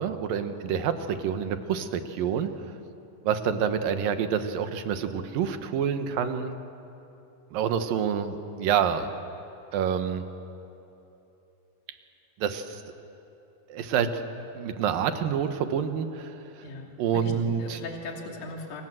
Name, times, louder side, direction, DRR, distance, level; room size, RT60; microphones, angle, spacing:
voice 1, 0.0-2.5 3.2-6.6 7.5-9.1 9.7-10.2 12.4-12.8 13.7-14.2 14.6-16.4 17.0-17.8, right 7 dB, 70° right, 8 dB, 2.9 m, -27 dB
voice 2, 16.6-17.3 17.6-18.8, left 2 dB, 55° left, 1 dB, 4.1 m, -39 dB
28.5 x 26.5 x 7.7 m, 2.9 s
omnidirectional pair, 4.3 m